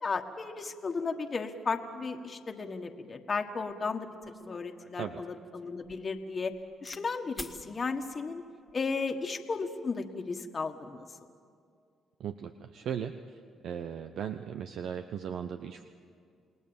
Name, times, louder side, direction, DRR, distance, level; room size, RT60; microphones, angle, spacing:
voice 1, 0.0-4.1 4.4-6.5 6.8-8.4 8.7-11.1, left 4 dB, 35° left, 4 dB, 1.6 m, -34 dB
sound 1, 3.7-3.8 4.2-7.0 7.3-7.6 8.5-8.8, left 2 dB, 10° left, 1.7 m, -48 dB
voice 2, 12.2-13.1 13.6-15.8, right 8 dB, 70° right, 8 dB, 0.9 m, -37 dB
29.0 x 19.5 x 7.2 m, 2.3 s
cardioid pair, 90°, 0 cm